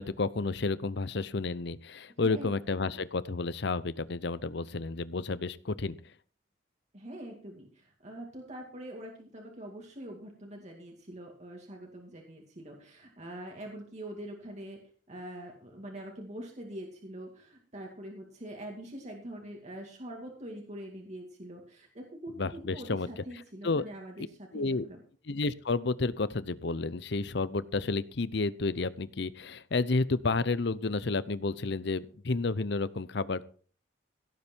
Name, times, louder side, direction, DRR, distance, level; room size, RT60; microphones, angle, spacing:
voice 1, 0.0-6.0 22.4-23.1 23.6-23.8 24.5-24.8 25.3-33.4, left 3 dB, 65° left, 17 dB, 0.7 m, -31 dB
voice 2, 2.2-3.0 6.9-14.8 15.1-25.0, right 1 dB, 40° right, 0 dB, 2.4 m, -44 dB
16.5 x 8.7 x 4.6 m, 0.43 s
head